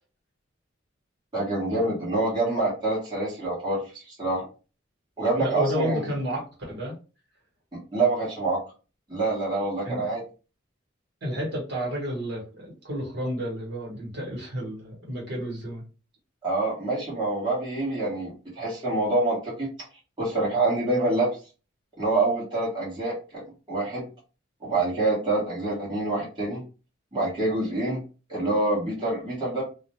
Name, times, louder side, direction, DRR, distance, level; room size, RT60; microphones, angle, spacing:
voice 1, 1.3-4.5 5.2-6.1 7.9-8.6 9.1-10.2 16.4-19.7 20.2-21.4 22.0-23.4 23.7-24.0 24.6-26.6 27.1-28.0 28.3-29.6, right 2 dB, 20° right, -8 dB, 1.1 m, -26 dB
voice 2, 5.4-6.4 6.7-6.9 9.8-10.0 11.2-15.8, equal, 55° right, -2 dB, 1.2 m, -31 dB
2.4 x 2.1 x 2.9 m, 0.34 s
head